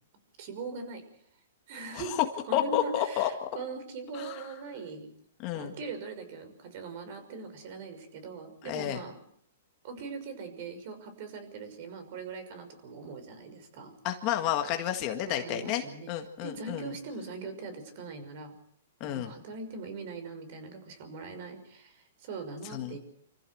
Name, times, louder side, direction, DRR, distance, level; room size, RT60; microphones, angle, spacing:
voice 1, 0.4-1.0 1.7-2.2 2.5-5.1 5.5-9.2 9.8-13.9 15.3-16.1 16.4-18.5 19.0-23.0, right 4 dB, 45° right, 8 dB, 6.1 m, -41 dB
voice 2, 1.9-2.2 2.5-3.5 4.1-4.5 5.4-5.7 8.6-9.0 14.0-16.9 19.0-19.3 22.7-23.0, left 11 dB, 30° left, 5 dB, 1.8 m, -31 dB
26.5 x 15.5 x 7.9 m, 0.67 s
hypercardioid pair, 160°, 0 cm